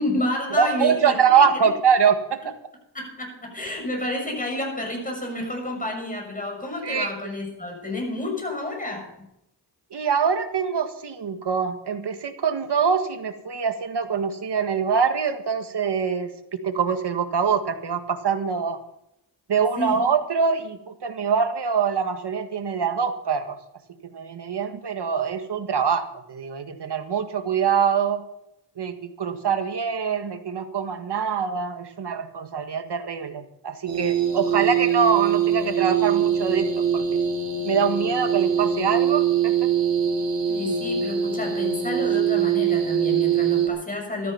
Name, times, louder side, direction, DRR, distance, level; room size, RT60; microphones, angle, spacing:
voice 1, 0.0-1.7 2.9-9.3 19.8-20.1 40.5-44.3, left 1 dB, 20° left, 1 dB, 6.6 m, -30 dB
voice 2, 0.5-2.5 6.8-7.1 9.9-18.8 19.5-23.6 24.1-28.2 28.8-36.7 36.9-37.2 37.6-39.5, right 6 dB, 65° right, 7 dB, 1.7 m, -24 dB
sound 1, 33.9-43.7, right 8 dB, 85° right, 2.4 m, -23 dB
13.5 x 13.5 x 5.7 m, 0.81 s
cardioid pair, 70°, 43 cm